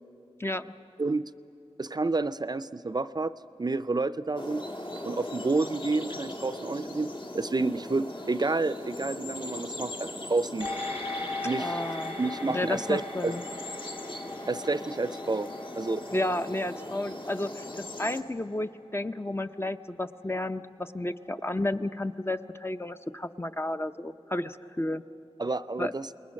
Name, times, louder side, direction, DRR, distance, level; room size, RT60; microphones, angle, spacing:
voice 1, 0.4-0.7 11.6-12.2 12.5-13.4 16.1-25.0 25.8-25.9, left 1 dB, 25° left, 9 dB, 0.6 m, -32 dB
voice 2, 1.8-3.3 3.6-4.6 5.0-10.7 11.4-11.8 12.2-13.3 14.5-15.5 15.7-16.0 25.4-26.1, right 3 dB, 40° right, 13 dB, 0.4 m, -29 dB
sound 1, 4.4-18.2, left 1 dB, 55° left, 1.6 m, -39 dB
sound 2, 10.6-19.3 19.7-19.8, left 2 dB, 85° left, 3.0 m, -39 dB
28.0 x 20.5 x 6.3 m, 3.0 s
wide cardioid pair, 60°, 11 cm